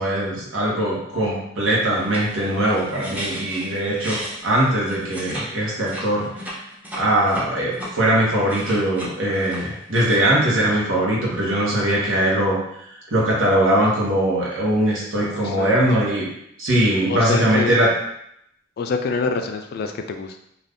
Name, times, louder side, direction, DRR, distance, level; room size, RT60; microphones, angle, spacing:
voice 1, 0.0-6.3 6.9-12.6 13.1-16.3 16.6-17.9, right 1 dB, 80° right, -5 dB, 1.0 m, -21 dB
sound 1, 1.9-5.5 5.8-7.9 8.3-10.2, equal, 10° right, 0.5 m, -35 dB
voice 2, 15.2-15.7 17.1-17.8 18.8-20.4, left 4 dB, 50° left, 5 dB, 0.3 m, -26 dB
2.5 x 2.4 x 3.4 m, 0.76 s
head